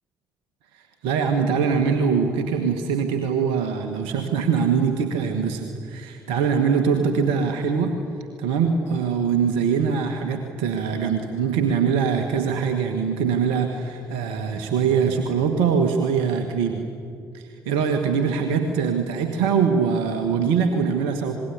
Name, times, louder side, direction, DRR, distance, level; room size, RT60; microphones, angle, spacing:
voice 1, 0.7-8.0 8.4-16.8 17.3-21.3, right 6 dB, 70° right, 6 dB, 1.7 m, -23 dB
27.0 x 21.0 x 9.9 m, 2.4 s
figure-of-eight pair, 45°, 9 cm